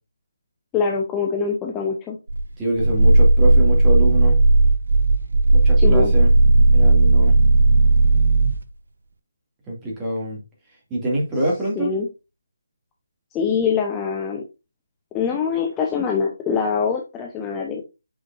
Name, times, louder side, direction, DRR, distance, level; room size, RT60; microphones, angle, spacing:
voice 1, 0.7-2.2 5.8-6.1 11.8-12.1 13.3-14.4 15.1-17.8, left 6 dB, 15° left, 0 dB, 0.8 m, -24 dB
Growling, 2.3-8.6, right 2 dB, 65° right, 0.6 m, -15 dB
voice 2, 2.6-4.4 5.5-6.3 6.7-7.3 9.7-10.4 10.9-11.9, right 1 dB, 15° right, -3 dB, 2.5 m, -25 dB
8.3 x 4.9 x 2.7 m, 0.28 s
figure-of-eight pair, 150°, 0 cm